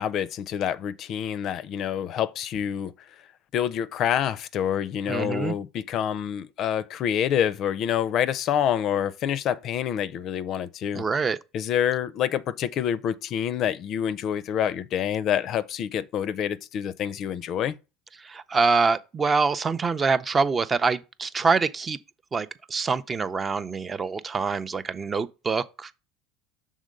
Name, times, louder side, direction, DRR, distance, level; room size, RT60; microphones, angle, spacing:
voice 1, 0.0-2.9 3.5-11.0 11.5-17.8, left 9 dB, 50° left, 0.4 m, -27 dB
voice 2, 5.1-5.5 10.9-11.4 18.2-22.0 22.3-25.9, right 4 dB, 25° right, 0.5 m, -25 dB
6.4 x 3.7 x 5.1 m
supercardioid pair, 110°, 0 cm